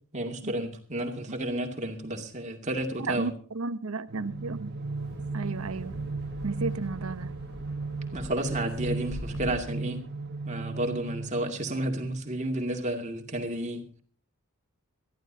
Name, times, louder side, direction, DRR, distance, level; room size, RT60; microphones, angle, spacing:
voice 1, 0.1-3.3 8.1-10.0 10.4-13.9, right 1 dB, 30° right, 2.4 m, -31 dB
voice 2, 3.1-4.7 5.3-5.9 6.4-7.3, right 3 dB, 75° right, 1.0 m, -33 dB
sound 1, 4.1-12.0, right 3 dB, 50° right, 1.5 m, -36 dB
Wind, 4.8-9.9, left 1 dB, 85° left, 3.0 m, -44 dB
22.5 x 14.5 x 2.8 m
head